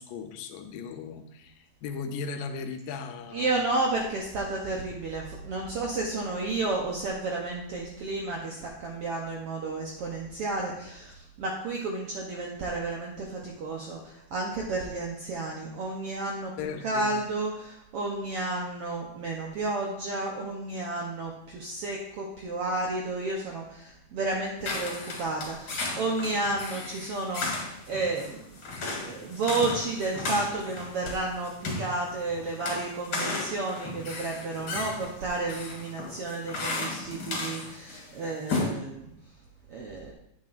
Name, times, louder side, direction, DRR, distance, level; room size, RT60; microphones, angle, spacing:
voice 1, 0.0-3.7 16.6-17.1, left 5 dB, 85° left, 7 dB, 2.4 m, -37 dB
voice 2, 3.3-16.6 16.8-28.4 29.0-39.1 39.7-40.1, right 2 dB, 75° right, -1 dB, 1.3 m, -32 dB
sound 1, 24.6-38.1 38.3-38.7, left 3 dB, 50° left, 2.3 m, -35 dB
9.7 x 8.4 x 2.5 m, 0.80 s
omnidirectional pair, 3.7 m